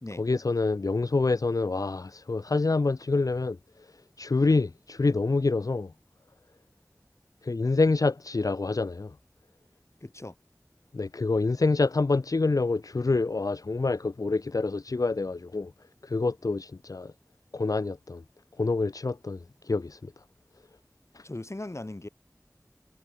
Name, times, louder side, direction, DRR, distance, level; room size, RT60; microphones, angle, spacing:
voice 1, 0.2-3.6 4.2-5.9 7.4-9.1 10.9-15.7 16.0-17.1 17.5-18.2 18.6-20.1 21.1-21.2, left 3 dB, 75° left, 0.5 m, -26 dB
voice 2, 10.0-10.3 21.2-22.1, left 2 dB, 50° left, 3.1 m, -38 dB
wide cardioid pair, 40°, 6 cm